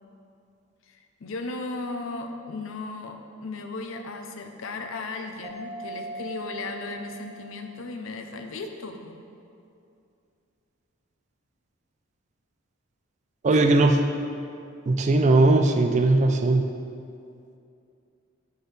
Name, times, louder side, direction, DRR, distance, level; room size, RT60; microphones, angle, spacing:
voice 1, 0.9-9.2 13.5-13.8, left 3 dB, 65° left, 5 dB, 0.5 m, -36 dB
Mallet percussion, 5.4-8.0, right 1 dB, 15° right, 0.9 m, -40 dB
voice 2, 13.4-14.0 14.9-16.6, right 2 dB, 35° right, 5 dB, 0.3 m, -19 dB
8.2 x 4.5 x 3.3 m, 2.5 s
head